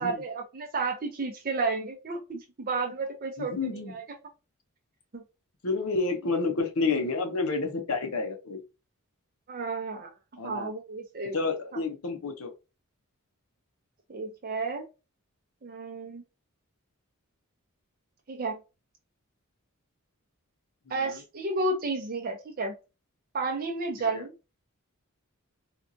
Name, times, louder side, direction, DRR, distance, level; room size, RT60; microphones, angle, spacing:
voice 1, 0.0-4.0 5.1-5.2 9.5-10.1 10.4-11.4 14.1-14.8 15.6-16.2 18.3-18.6 20.9-22.7 23.3-24.3, right 3 dB, 40° right, 0.6 m, -32 dB
voice 2, 3.4-3.9 5.6-8.6 10.4-10.7 11.3-12.5 20.9-21.2 24.0-24.2, left 3 dB, 70° left, 0.8 m, -30 dB
4.4 x 2.4 x 2.6 m
head